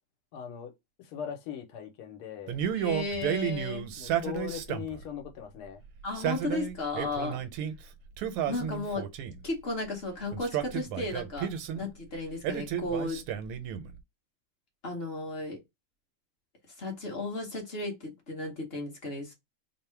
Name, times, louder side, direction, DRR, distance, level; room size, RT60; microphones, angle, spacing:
voice 1, 0.3-0.7 1.0-2.6 3.9-5.8 11.7-11.9, left 8 dB, 85° left, 1.6 m, -40 dB
Male speech man speaking, 2.5-5.0 6.0-7.7 8.2-9.5 10.3-11.8 12.4-13.9, right 9 dB, 85° right, 1.5 m, -32 dB
voice 2, 2.7-3.9 6.0-7.4 8.5-9.1 9.4-13.2 14.8-15.6 16.8-19.3, left 2 dB, 40° left, 0.9 m, -34 dB
3.6 x 2.0 x 4.3 m
omnidirectional pair, 2.4 m